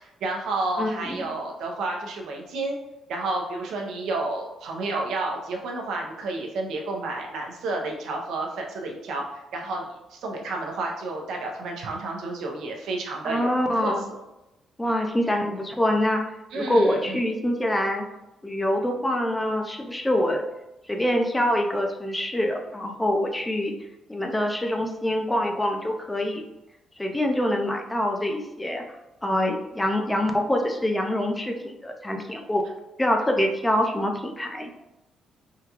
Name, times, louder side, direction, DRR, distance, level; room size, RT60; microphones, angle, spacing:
voice 1, 0.0-2.8 3.1-13.9 16.5-17.2, right 2 dB, 80° right, 0 dB, 0.7 m, -31 dB
voice 2, 0.8-1.3 13.2-14.0 14.8-16.2 16.5-18.0 18.4-20.4 20.9-23.7 24.1-26.4 27.0-28.8 29.2-32.6 33.0-34.7, left 1 dB, 10° left, 2 dB, 0.5 m, -25 dB
3.7 x 2.3 x 2.9 m, 0.92 s
cardioid pair, 90°, 0 cm